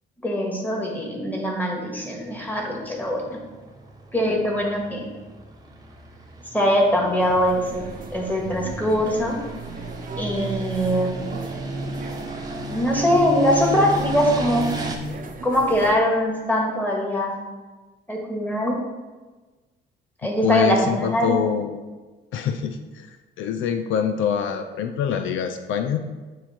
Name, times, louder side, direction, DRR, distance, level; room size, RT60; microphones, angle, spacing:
voice 1, 0.2-3.4 4.1-5.1 6.5-7.8 8.1-9.4 10.2-11.1 12.7-14.7 15.4-17.3 18.1-18.8 20.2-21.4, equal, 10° left, -1 dB, 1.7 m, -22 dB
sound 1, 2.0-15.0, right 1 dB, 20° right, 1.0 m, -34 dB
sound 2, 7.2-16.0, right 4 dB, 45° right, 0.8 m, -39 dB
voice 2, 20.4-21.8 22.3-26.0, left 7 dB, 80° left, 8 dB, 0.5 m, -25 dB
9.0 x 3.1 x 4.4 m, 1.3 s
cardioid pair, 90°, 20 cm